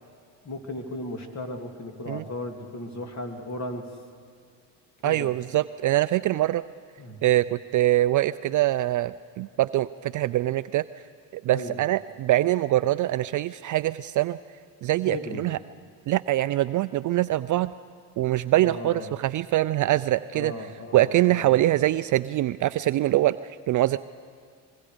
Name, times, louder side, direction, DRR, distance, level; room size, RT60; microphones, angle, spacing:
voice 1, 0.4-4.0 5.0-5.3 7.0-7.2 11.5-11.8 15.0-15.5 18.6-19.1 20.3-21.6, left 2 dB, 35° left, 5 dB, 2.8 m, -36 dB
voice 2, 5.0-6.6 7.2-10.8 11.3-14.4 14.8-15.6 16.1-17.7 18.2-20.5 20.9-23.4 23.7-24.0, right 15 dB, 40° right, 14 dB, 0.4 m, -23 dB
25.5 x 22.0 x 5.1 m, 2.3 s
supercardioid pair, 80°, 48 cm